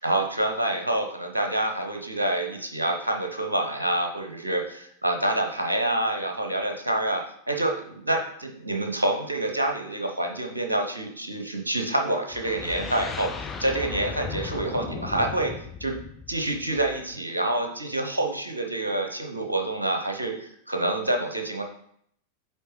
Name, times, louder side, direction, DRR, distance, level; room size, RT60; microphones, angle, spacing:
voice 1, 0.0-7.2 7.5-15.5 15.8-16.0 16.3-21.6, right 1 dB, 80° right, 3 dB, 0.8 m, -27 dB
sound 1, 12.3-17.1, left 5 dB, 20° left, 0.5 m, -37 dB
8.9 x 3.3 x 3.2 m, 0.67 s
figure-of-eight pair, 90°, 0 cm